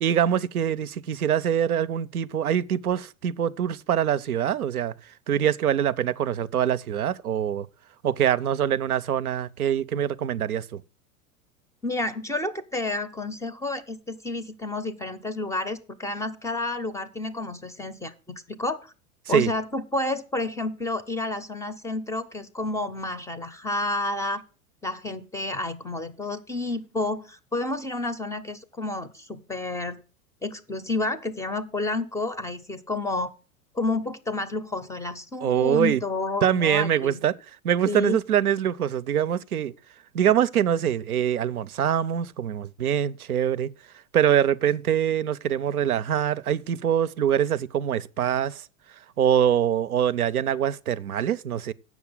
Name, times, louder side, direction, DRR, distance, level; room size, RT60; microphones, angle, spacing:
voice 1, 0.0-4.9 5.3-7.7 8.0-10.8 19.3-19.5 35.4-36.0 36.4-37.4 37.6-39.7 40.1-43.7 44.1-48.6 49.2-51.7, right 9 dB, 85° right, 0.5 m, -24 dB
voice 2, 11.8-18.9 19.3-24.4 24.8-30.0 30.4-33.3 33.7-37.2 37.8-38.2, left 2 dB, 5° left, 0.5 m, -30 dB
8.0 x 6.1 x 6.8 m
figure-of-eight pair, 90°, 42 cm